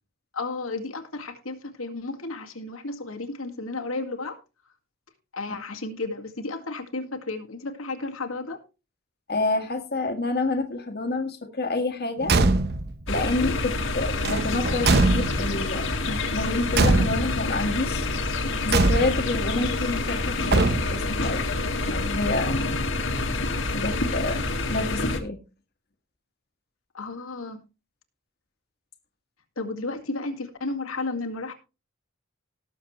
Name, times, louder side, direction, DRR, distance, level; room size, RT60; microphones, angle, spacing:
voice 1, 0.3-4.4 5.3-8.6 26.9-27.6 29.6-31.5, left 3 dB, 85° left, 3 dB, 2.0 m, -33 dB
voice 2, 9.3-12.3 13.1-18.1 18.6-20.6 20.9-22.5 23.7-24.4 24.7-25.4, left 2 dB, 50° left, 5 dB, 1.7 m, -28 dB
Car / Truck / Slam, 12.2-13.0 14.2-15.6 16.7-17.5 18.7-19.4 20.5-21.1, right 3 dB, 50° right, 1.0 m, -22 dB
sound 1, 13.1-25.2, left 2 dB, 65° left, 1.9 m, -27 dB
18.5 x 7.2 x 3.1 m, 0.30 s
head